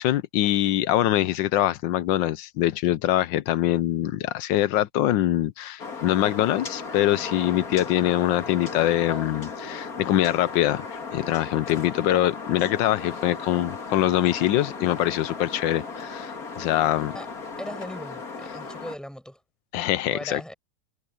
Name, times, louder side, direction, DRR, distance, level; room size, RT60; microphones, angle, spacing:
voice 1, 0.0-17.1 19.7-20.4, left 13 dB, 85° left, 1.4 m, -24 dB
sound 1, 5.8-19.0, left 4 dB, 50° left, 2.7 m, -36 dB
voice 2, 17.6-19.4 20.1-20.5, equal, ahead, 5.1 m, -38 dB
omnidirectional pair, 2.0 m